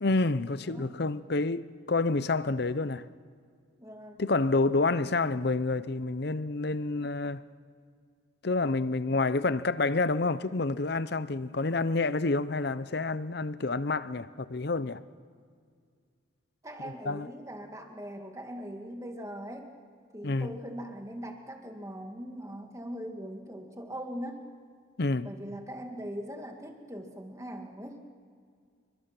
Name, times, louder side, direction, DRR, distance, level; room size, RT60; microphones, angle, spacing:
voice 1, 0.0-3.0 4.2-7.4 8.4-15.0 16.8-17.3 20.2-20.5 25.0-25.3, left 3 dB, 55° left, 0.7 m, -28 dB
voice 2, 3.8-4.2 16.6-19.7 20.1-24.4 25.2-28.0, equal, 15° right, 2.1 m, -41 dB
28.0 x 23.5 x 6.0 m
head